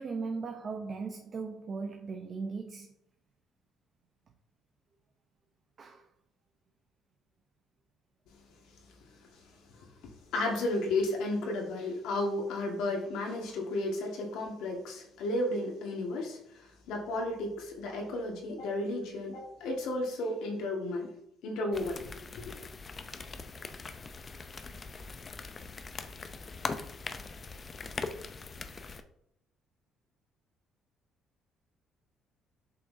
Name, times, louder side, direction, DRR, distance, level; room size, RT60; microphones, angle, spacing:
voice 1, 0.0-2.9 5.8-6.0, right 4 dB, 45° right, 0.8 m, -38 dB
voice 2, 10.3-21.1 21.4-22.0 22.4-22.6, left 2 dB, 80° left, 1.9 m, -33 dB
sound 1, 21.7-29.0, left 4 dB, 35° left, 0.7 m, -41 dB
7.7 x 5.6 x 2.8 m
supercardioid pair, 80°, 0 cm